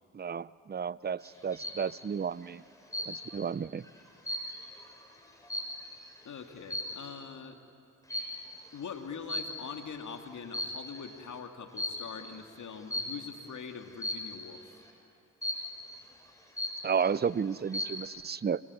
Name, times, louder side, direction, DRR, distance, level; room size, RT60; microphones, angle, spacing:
voice 1, 0.1-2.6 3.1-3.8 16.8-18.6, right 6 dB, 30° right, 20 dB, 0.6 m, -32 dB
sound 1, 1.2-1.9 2.9-3.4 3.8-6.1 6.6-7.1 8.1-8.5 9.3-9.9 10.4-11.1 11.8-12.1 12.9-13.3 14.0-14.4 15.4-15.9 16.3-16.4 16.6-17.2 17.5-18.1, left 1 dB, 10° left, 7.3 m, -36 dB
voice 2, 6.2-7.6 8.7-14.6, left 6 dB, 65° left, 5 dB, 2.5 m, -43 dB
25.5 x 23.5 x 9.9 m, 2.6 s
supercardioid pair, 50°, 32 cm